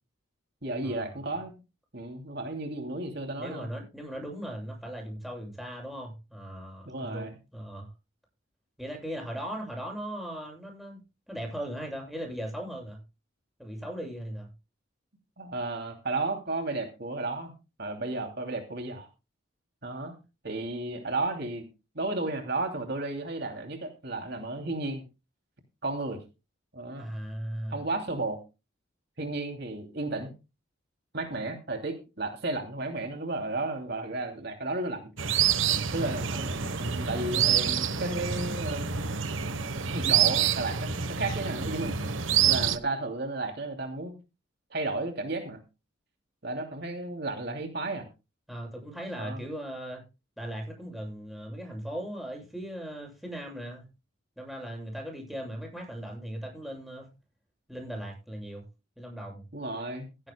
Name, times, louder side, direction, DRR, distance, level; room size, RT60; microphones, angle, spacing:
voice 1, 0.6-1.5 1.9-3.7 6.9-7.3 15.4-17.5 17.8-19.1 19.8-20.1 20.4-21.7 21.9-25.0 25.8-26.2 26.7-27.1 27.7-28.4 29.2-30.3 31.1-35.1 35.9-39.0 39.9-42.0 42.4-44.1 44.7-45.6 46.4-48.1 49.2-49.5 59.5-60.1, right 2 dB, 55° right, 4 dB, 2.8 m, -33 dB
voice 2, 3.4-7.9 8.8-11.0 11.3-13.0 13.6-14.5 27.0-27.8 48.5-50.0 50.4-53.8 54.4-57.1 57.7-58.6 59.0-59.4, equal, ahead, 0 dB, 7.9 m, -38 dB
sound 1, 35.2-42.8, right 8 dB, 75° right, 1.1 m, -27 dB
16.5 x 15.5 x 2.3 m, 0.29 s
head